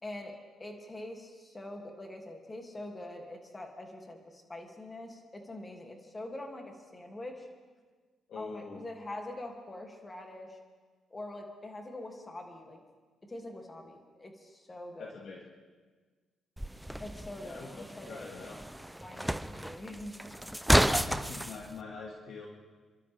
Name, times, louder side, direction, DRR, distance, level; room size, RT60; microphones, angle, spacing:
voice 1, 0.0-7.5 8.3-10.6 11.1-12.8 13.2-15.2 17.0-18.3 19.0-20.5, left 1 dB, 20° left, 2 dB, 2.6 m, -44 dB
voice 2, 8.3-8.8 15.0-15.4 17.4-18.6 20.7-22.5, left 4 dB, 65° left, -1 dB, 2.1 m, -44 dB
sound 1, 16.6-21.6, equal, 5° right, 0.6 m, -31 dB
29.0 x 12.0 x 3.6 m, 1.4 s
cardioid pair, 90°, 0 cm